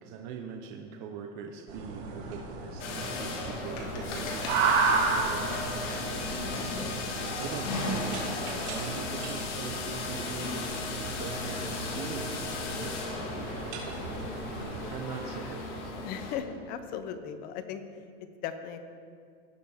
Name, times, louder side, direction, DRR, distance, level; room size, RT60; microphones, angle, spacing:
voice 1, 0.0-13.7 14.9-15.9, right 6 dB, 40° right, 3 dB, 0.7 m, -42 dB
sound 1, 1.7-15.0, right 4 dB, 60° right, 2.6 m, -34 dB
sound 2, 2.6-15.7, left 3 dB, 45° left, 1.8 m, -47 dB
sound 3, 2.8-16.3, left 2 dB, 65° left, 2.1 m, -35 dB
voice 2, 16.0-17.8 18.4-18.8, left 8 dB, 25° left, 9 dB, 0.4 m, -37 dB
17.5 x 6.6 x 3.4 m, 2.3 s
supercardioid pair, 160°, 38 cm